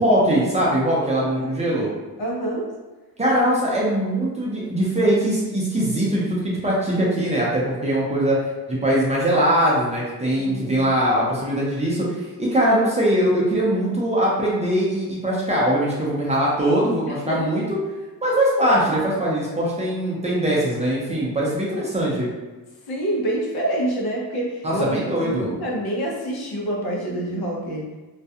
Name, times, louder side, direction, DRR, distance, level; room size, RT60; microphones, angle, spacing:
voice 1, 0.0-1.9 3.2-8.4 8.7-17.8 18.2-22.3 24.6-25.5, right 1 dB, 15° right, -6 dB, 0.5 m, -21 dB
voice 2, 2.2-2.7 10.4-10.9 17.1-17.5 22.9-24.8 25.2-27.9, right 1 dB, 70° left, -2 dB, 0.7 m, -27 dB
2.4 x 2.2 x 2.7 m, 1.2 s
wide cardioid pair, 145°, 39 cm